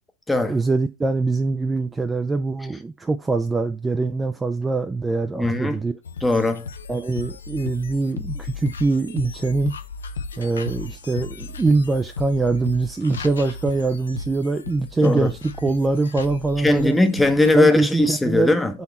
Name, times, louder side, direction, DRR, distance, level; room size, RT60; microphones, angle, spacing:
voice 1, 0.5-5.9 6.9-9.7 10.4-17.0 17.5-18.5 18.7-18.8, right 3 dB, 15° right, 0.3 m, -23 dB
voice 2, 5.3-5.8 6.2-6.7 15.0-15.3 16.6-18.7, left 2 dB, 5° left, 0.7 m, -19 dB
sound 1, 6.0-17.5, left 4 dB, 85° left, 0.5 m, -35 dB
4.0 x 3.0 x 4.1 m
hypercardioid pair, 105°, 0 cm